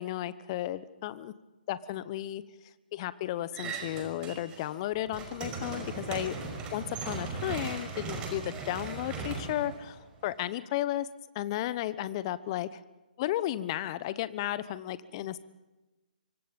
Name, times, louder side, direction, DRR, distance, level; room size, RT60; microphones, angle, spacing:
voice 1, 0.0-1.3 1.7-2.4 2.9-6.4 6.7-11.1 11.3-12.8 13.2-15.4, left 13 dB, 35° left, 16 dB, 1.1 m, -34 dB
sound 1, 3.5-4.7 5.0-10.3, right 4 dB, 20° right, 5.2 m, -38 dB
25.0 x 24.5 x 5.4 m, 1.1 s
figure-of-eight pair, 130°, 5 cm